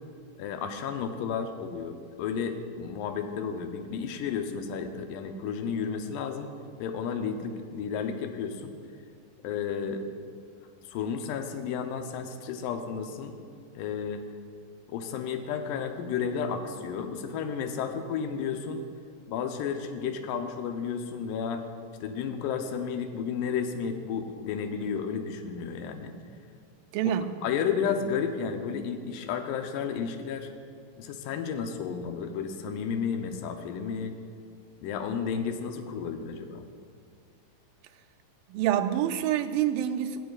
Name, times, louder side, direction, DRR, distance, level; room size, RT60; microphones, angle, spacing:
voice 1, 0.4-6.5 6.8-8.8 9.4-10.0 10.8-13.3 13.7-14.2 14.9-18.8 19.3-21.6 22.0-26.2 27.0-30.5 31.0-34.2 34.8-36.6, left 6 dB, 80° left, 2.3 m, -32 dB
voice 2, 26.9-27.3 38.5-40.2, right 11 dB, 80° right, 2.2 m, -26 dB
16.5 x 10.0 x 2.4 m
omnidirectional pair, 4.0 m